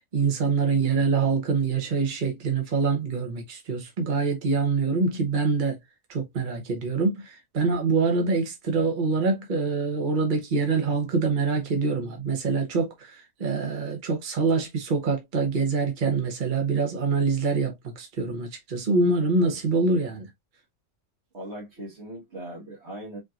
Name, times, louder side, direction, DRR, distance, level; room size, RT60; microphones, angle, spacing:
voice 1, 0.1-5.8 6.1-20.3, right 4 dB, 40° right, 1.2 m, -25 dB
voice 2, 21.3-23.2, right 1 dB, 60° right, 1.9 m, -39 dB
5.0 x 3.0 x 2.4 m
omnidirectional pair, 1.3 m